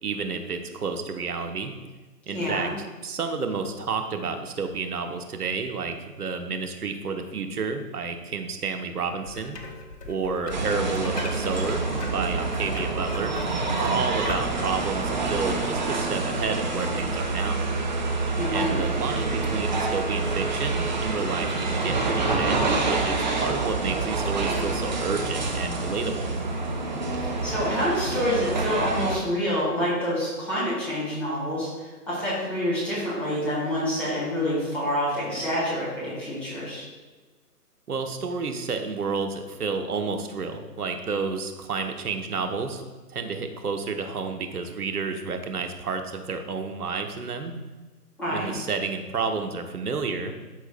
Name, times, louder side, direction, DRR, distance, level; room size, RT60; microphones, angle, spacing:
voice 1, 0.0-1.7 2.3-2.7 3.0-9.6 10.1-13.4 13.8-17.7 18.5-26.3 37.9-42.8 43.1-47.5 48.3-50.3, right 4 dB, 65° right, 6 dB, 1.0 m, -30 dB
voice 2, 2.3-2.7 18.4-18.8 27.2-36.9 48.2-48.5, equal, 5° left, -8 dB, 1.3 m, -27 dB
sound 1, 9.2-14.9, left 3 dB, 70° left, 1.2 m, -40 dB
sound 2, 10.5-29.2, right 3 dB, 30° right, 0.6 m, -27 dB
12.5 x 4.6 x 2.2 m, 1.3 s
figure-of-eight pair, 145°, 48 cm